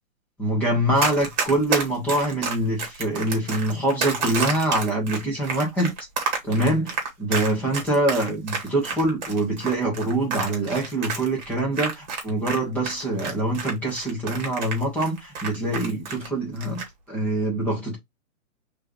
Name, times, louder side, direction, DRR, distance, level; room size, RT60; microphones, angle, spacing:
voice 1, 0.4-5.9 6.4-16.8 17.1-18.0, right 1 dB, 5° left, 1.4 m, -24 dB
Run, 1.0-12.6 12.8-16.3 16.6-16.9, right 5 dB, 35° right, 2.1 m, -29 dB
4.7 x 3.2 x 3.1 m
hypercardioid pair, 175°, 39 cm